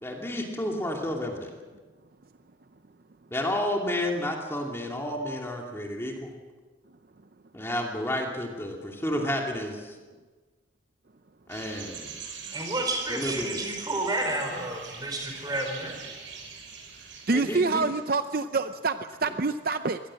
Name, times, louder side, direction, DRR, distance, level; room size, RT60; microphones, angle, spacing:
voice 1, 0.0-1.5 3.3-6.3 7.5-10.0 11.5-12.1 13.1-13.6 15.5-15.6 17.3-17.8, left 1 dB, 15° left, 0 dB, 2.5 m, -31 dB
sound 1, 11.5-18.0, right 5 dB, 75° right, 6.2 m, -42 dB
voice 2, 12.5-16.0, right 2 dB, 20° right, 3 dB, 4.7 m, -30 dB
voice 3, 17.3-20.0, right 3 dB, 50° right, 9 dB, 0.6 m, -26 dB
24.0 x 18.5 x 7.6 m, 1.4 s
head